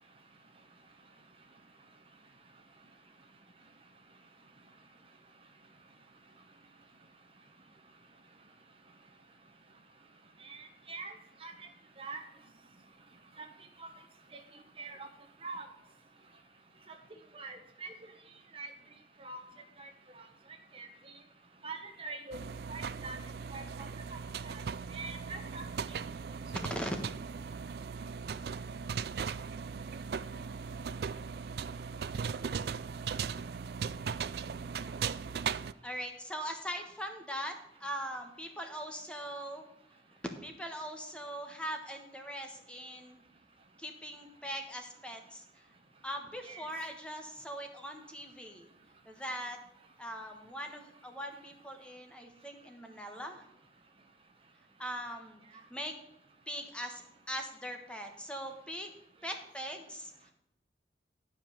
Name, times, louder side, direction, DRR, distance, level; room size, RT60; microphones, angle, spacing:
voice 1, 10.4-11.1 11.4-11.5 12.0-12.2 13.4-13.5 13.8-13.9 14.8-15.1 15.4-15.6 17.3-17.9 18.5-18.7 19.2-19.4 19.8-19.9 20.7-20.9 21.6-22.4 22.7-23.2 23.5-23.6 24.1-24.2 24.4-24.6 24.9-25.6 46.4-46.7, right 3 dB, 30° right, 5 dB, 1.0 m, -43 dB
sound 1, 22.3-35.7, right 6 dB, 60° right, 0.3 m, -38 dB
voice 2, 35.8-39.6 40.4-43.2 43.8-45.6 46.0-48.7 49.0-49.6 50.0-53.5 54.8-55.4 55.7-55.9 56.5-57.0 57.3-58.9 59.2-60.3, equal, 5° left, 4 dB, 1.2 m, -41 dB
12.0 x 5.4 x 6.4 m, 0.83 s
head